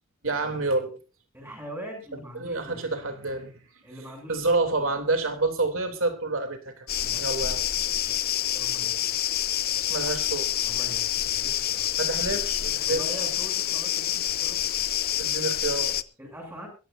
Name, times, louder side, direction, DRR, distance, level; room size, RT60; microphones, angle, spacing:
voice 1, 0.2-1.0 2.1-3.6 4.3-6.9 7.2-7.7 9.9-10.5 12.0-13.0 15.2-16.0, right 3 dB, 70° right, 6 dB, 3.2 m, -28 dB
voice 2, 1.3-2.8 3.8-4.5 7.0-7.2 8.0-8.2 8.5-9.1 10.6-11.9 12.8-14.6 16.2-16.7, equal, 10° right, 0 dB, 8.0 m, -42 dB
sound 1, 6.9-16.0, left 12 dB, 45° left, 0.6 m, -27 dB
22.5 x 15.0 x 2.7 m, 0.34 s
head